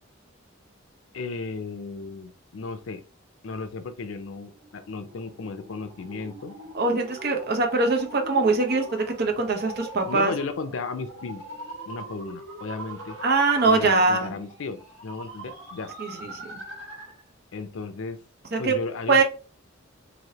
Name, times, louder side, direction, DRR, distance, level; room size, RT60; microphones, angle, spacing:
voice 1, 1.1-3.0 3.4-6.5 10.1-11.4 11.9-13.2 13.6-15.9 17.5-18.2 18.6-19.2, left 4 dB, 80° left, 9 dB, 0.5 m, -34 dB
sound 1, 4.5-17.2, right 1 dB, 90° right, 1.4 m, -42 dB
voice 2, 6.7-10.3 13.2-14.3 16.0-16.5 18.5-18.7 19.1-19.2, right 3 dB, 55° right, 3 dB, 0.7 m, -22 dB
3.1 x 2.6 x 2.8 m, 0.35 s
head